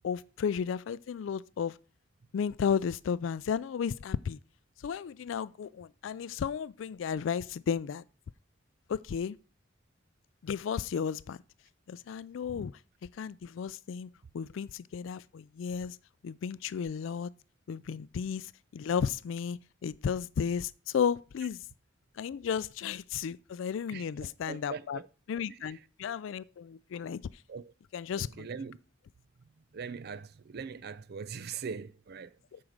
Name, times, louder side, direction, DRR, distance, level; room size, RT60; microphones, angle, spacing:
voice 1, 0.0-1.8 2.3-4.4 4.8-8.0 8.9-9.4 10.4-11.4 11.9-12.7 13.2-14.1 14.3-16.0 16.2-17.3 17.7-21.7 22.2-25.0 25.3-27.2 27.9-28.5 32.5-32.6, left 7 dB, 70° left, 0.3 m, -33 dB
voice 2, 23.9-25.1 25.5-25.8 27.5-27.7 28.1-28.8 29.7-32.4, right 5 dB, 55° right, 0.4 m, -42 dB
8.8 x 4.7 x 6.4 m
head